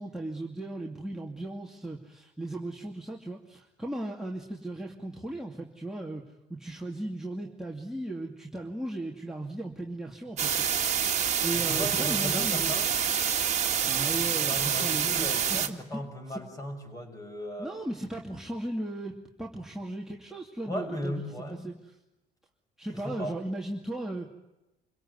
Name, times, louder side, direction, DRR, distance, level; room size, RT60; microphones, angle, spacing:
voice 1, 0.0-6.2 6.5-12.7 13.8-16.0 16.3-16.4 17.6-19.1 19.4-21.2 21.5-21.7 22.8-24.3, right 1 dB, 5° right, -2 dB, 2.7 m, -37 dB
sound 1, 10.4-15.7, right 8 dB, 40° right, 2.2 m, -27 dB
voice 2, 11.5-12.9 14.1-17.7 20.7-21.7 23.0-23.4, left 1 dB, 20° left, 4 dB, 6.8 m, -37 dB
28.0 x 17.5 x 9.7 m, 0.97 s
cardioid pair, 110°, 17 cm